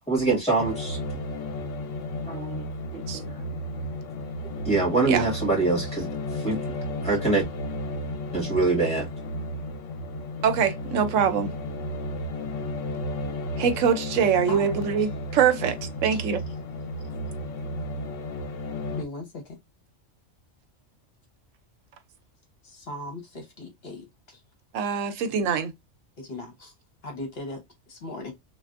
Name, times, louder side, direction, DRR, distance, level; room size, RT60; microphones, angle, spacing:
voice 1, 0.1-1.0 2.2-3.6 4.6-6.1 6.3-6.6 7.0-7.4 8.3-9.1, right 3 dB, 5° left, 1.8 m, -25 dB
sound 1, 0.6-19.0, left 1 dB, 75° left, 0.9 m, -33 dB
voice 2, 10.4-11.5 13.6-15.8 16.0-16.4 24.7-25.7, right 7 dB, 80° right, 0.9 m, -23 dB
voice 3, 14.5-14.9 16.1-16.2 16.9-17.0 19.0-19.6 22.6-24.4 26.2-26.7 27.0-28.3, left 2 dB, 55° left, 1.1 m, -38 dB
3.3 x 2.4 x 2.4 m
omnidirectional pair, 1.3 m